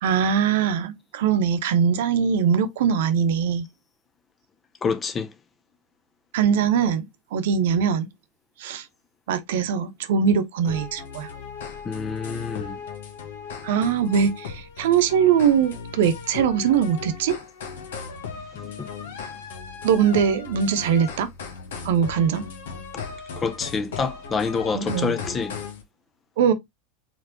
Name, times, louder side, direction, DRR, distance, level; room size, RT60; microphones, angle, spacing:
voice 1, 0.0-3.6 6.3-8.1 8.6-8.9 9.3-11.3 13.6-17.4 19.8-21.3 21.8-22.4 24.7-25.1 26.4-26.5, right 7 dB, 70° right, 0.9 m, -21 dB
voice 2, 4.8-5.3 11.8-12.8 18.8-19.1 23.4-25.5, left 5 dB, 25° left, 0.8 m, -27 dB
sound 1, 10.7-25.8, left 5 dB, 75° left, 1.2 m, -37 dB
4.5 x 4.0 x 2.6 m
hypercardioid pair, 85°, 0 cm